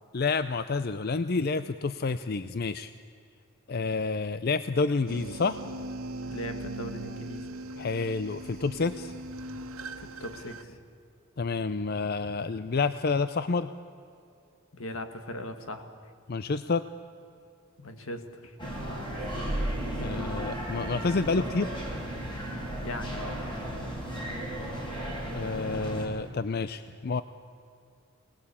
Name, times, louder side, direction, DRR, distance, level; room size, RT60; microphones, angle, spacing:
voice 1, 0.1-2.9 3.7-5.6 7.8-9.1 11.4-13.7 16.3-16.8 20.0-21.7 25.3-27.2, left 4 dB, 45° left, 12 dB, 0.5 m, -29 dB
sound 1, 5.1-10.6, right 1 dB, 85° right, 1.5 m, -39 dB
voice 2, 6.3-7.5 10.0-10.8 14.7-15.9 17.8-18.6 22.8-23.4, left 1 dB, 75° left, 7 dB, 2.0 m, -39 dB
sound 2, 18.6-26.1, right 1 dB, 20° left, 4.6 m, -34 dB
24.5 x 19.0 x 8.7 m, 2.5 s
head